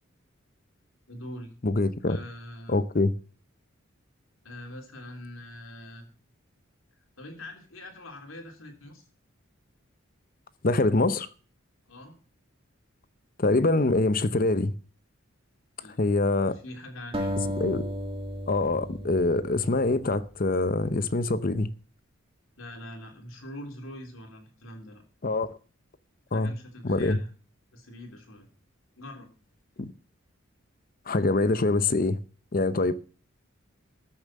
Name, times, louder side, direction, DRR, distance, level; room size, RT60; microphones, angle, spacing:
voice 1, 1.1-1.5 2.1-2.8 4.4-6.1 7.2-9.0 11.9-12.2 15.8-16.0 16.4-17.4 22.6-25.0 26.3-27.3 27.7-28.5 29.0-29.3, left 1 dB, 80° left, 3.5 m, -43 dB
voice 2, 1.6-2.2 2.7-3.1 10.6-11.3 13.4-14.7 16.0-16.6 17.6-17.8 18.5-21.7 25.2-25.6 26.3-26.5 26.8-27.2 29.8-29.9 31.1-32.2 32.5-32.9, left 2 dB, 45° left, 0.7 m, -24 dB
sound 1, 17.1-20.4, equal, 25° right, 1.7 m, -34 dB
13.5 x 7.2 x 7.5 m
head